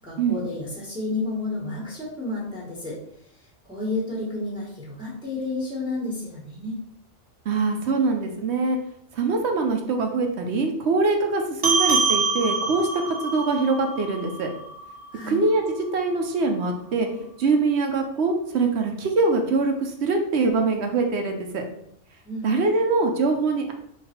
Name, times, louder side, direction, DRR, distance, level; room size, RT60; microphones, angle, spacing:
voice 1, 0.0-3.0 3.3-6.8 15.1-15.4 22.2-22.5, left 2 dB, 5° right, -6 dB, 1.2 m, -31 dB
voice 2, 7.5-8.8 9.1-14.5 15.3-15.6 15.9-21.6 22.4-23.7, right 3 dB, 60° right, 4 dB, 0.9 m, -23 dB
sound 1, 11.6-16.4, right 4 dB, 30° right, 0.8 m, -27 dB
3.9 x 2.6 x 4.3 m, 0.71 s
omnidirectional pair, 1.4 m